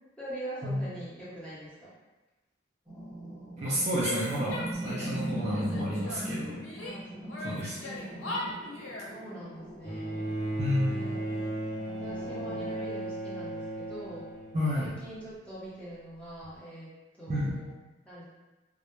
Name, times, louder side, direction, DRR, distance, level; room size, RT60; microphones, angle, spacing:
voice 1, 0.2-1.9 6.8-7.4 7.8-8.4 9.1-10.3 10.9-11.5 12.0-14.3 14.7-16.9 17.1-17.7 18.0-18.2, right 1 dB, 5° left, -10 dB, 0.8 m, -43 dB
sound 1, 2.9-12.8, equal, 20° right, 1.1 m, -40 dB
voice 2, 3.6-6.6 7.4-7.8 10.6-10.9 14.5-15.0 17.3-17.5, equal, 35° right, -7 dB, 0.4 m, -30 dB
Female speech woman speaking / Yell, 4.0-5.2 5.5-7.0 7.3-9.1, left 2 dB, 85° left, 0.5 m, -39 dB
Bowed string instrument, 9.8-15.3 16.4-16.5, right 1 dB, 55° left, 0.8 m, -36 dB
2.1 x 2.0 x 3.0 m, 1.1 s
head